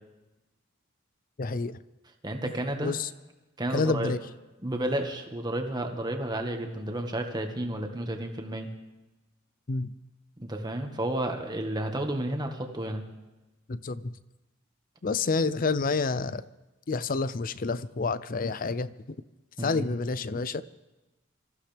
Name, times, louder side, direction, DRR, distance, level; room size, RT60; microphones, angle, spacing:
voice 1, 1.4-1.8 2.8-3.1 3.7-4.2 9.7-9.9 13.7-14.1 15.0-16.4 16.9-18.9 19.6-20.6, left 4 dB, 45° left, 16 dB, 0.6 m, -28 dB
voice 2, 2.2-2.9 3.6-4.1 4.6-8.7 10.4-13.0 19.6-19.9, right 1 dB, 20° right, 4 dB, 1.6 m, -31 dB
25.0 x 14.5 x 3.5 m, 1.1 s
head